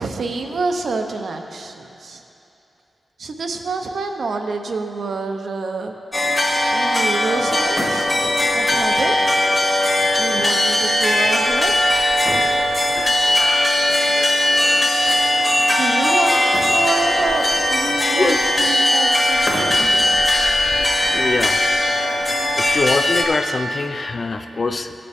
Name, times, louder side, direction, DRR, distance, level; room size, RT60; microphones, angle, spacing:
voice 1, 0.0-2.2 3.2-5.9 6.7-8.1 8.5-9.1 10.2-11.7 15.8-19.7 24.6-24.7, right 3 dB, 65° right, 4 dB, 0.7 m, -27 dB
sound 1, 6.1-23.2, left 1 dB, 20° left, 1.1 m, -18 dB
voice 2, 18.1-18.5 21.1-21.7 22.6-24.9, left 3 dB, 40° left, 8 dB, 0.4 m, -23 dB
16.5 x 6.8 x 3.5 m, 2.9 s
wide cardioid pair, 145°, 0 cm